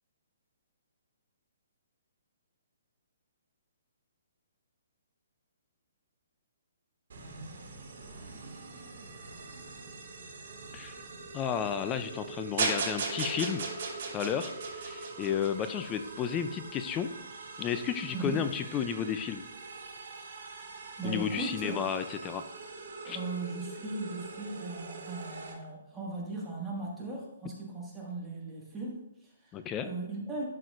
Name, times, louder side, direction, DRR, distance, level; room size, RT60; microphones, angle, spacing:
sound 1, 7.1-25.5, right 3 dB, 65° right, 1.9 m, -44 dB
voice 1, 11.3-13.7 14.1-17.1 17.6-19.4 21.0-22.4 23.1-23.2 29.5-29.9, left 8 dB, 15° left, 10 dB, 0.3 m, -32 dB
sound 2, 12.6-15.9, right 4 dB, 50° right, 2.6 m, -34 dB
voice 2, 21.0-21.8 23.0-30.5, right 3 dB, 5° right, -6 dB, 1.7 m, -38 dB
11.0 x 6.2 x 2.5 m, 0.84 s
hypercardioid pair, 165°, 0 cm